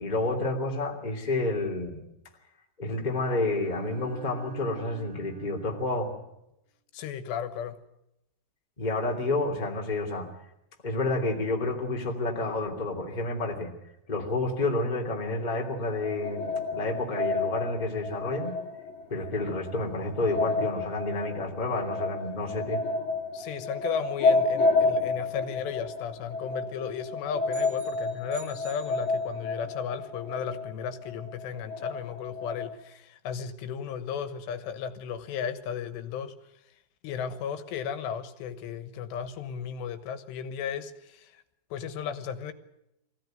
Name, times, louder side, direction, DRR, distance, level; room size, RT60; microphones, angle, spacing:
voice 1, 0.0-2.0 2.8-6.1 8.8-10.3 10.8-13.7 14.1-18.6 19.1-22.8, left 2 dB, 15° left, 1 dB, 2.4 m, -29 dB
Bowed string instrument, 3.1-6.3, right 11 dB, 75° right, 4.7 m, -48 dB
voice 2, 6.9-7.8 23.3-36.5 37.0-41.4 41.7-42.5, left 7 dB, 80° left, 10 dB, 3.4 m, -35 dB
sound 1, 16.0-32.7, left 3 dB, 60° left, 5.6 m, -30 dB
sound 2, 27.5-29.7, right 8 dB, 30° right, 4.2 m, -50 dB
23.5 x 16.5 x 9.2 m, 0.85 s
omnidirectional pair, 4.9 m